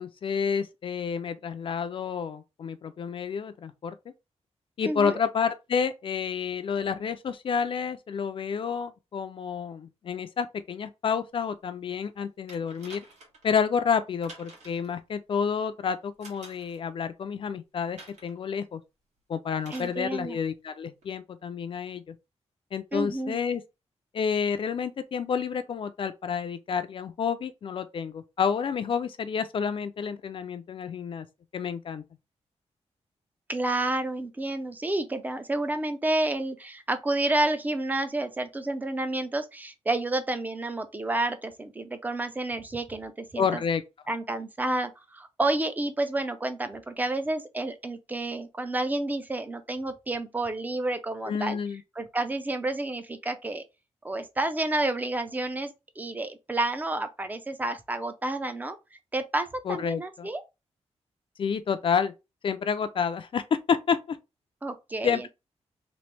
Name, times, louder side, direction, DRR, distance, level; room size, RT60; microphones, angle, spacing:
voice 1, 0.0-4.0 4.8-13.0 13.4-18.8 19.3-22.1 22.7-23.6 24.1-31.3 31.5-32.0 43.4-43.8 51.3-51.8 59.7-60.3 61.4-62.1 62.4-64.2 65.0-65.3, left 6 dB, 50° left, 0.4 m, -29 dB
voice 2, 4.8-5.2 19.7-20.4 22.9-23.4 33.5-43.6 44.1-51.6 52.0-53.6 54.0-58.8 59.1-60.4 64.6-65.2, right 2 dB, 15° right, 0.4 m, -30 dB
sound 1, 12.5-13.5 14.2-14.9 16.2-16.8 18.0-18.4 19.6-20.0 21.0-21.1, right 2 dB, 90° right, 1.4 m, -49 dB
3.1 x 2.9 x 3.2 m
wide cardioid pair, 175°, 12 cm